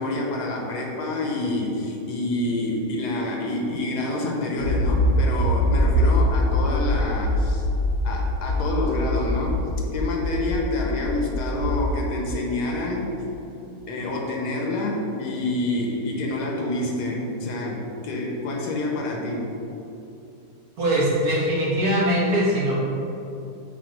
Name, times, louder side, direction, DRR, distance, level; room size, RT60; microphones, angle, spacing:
voice 1, 0.0-7.6 8.0-13.1 13.9-19.5, left 2 dB, 70° left, 0 dB, 1.3 m, -27 dB
Accelerating revving vroom, 4.6-11.9, left 1 dB, 85° right, 1.8 m, -23 dB
voice 2, 20.8-22.8, equal, 60° right, -7 dB, 1.8 m, -21 dB
7.2 x 2.7 x 5.1 m, 2.8 s
omnidirectional pair, 1.9 m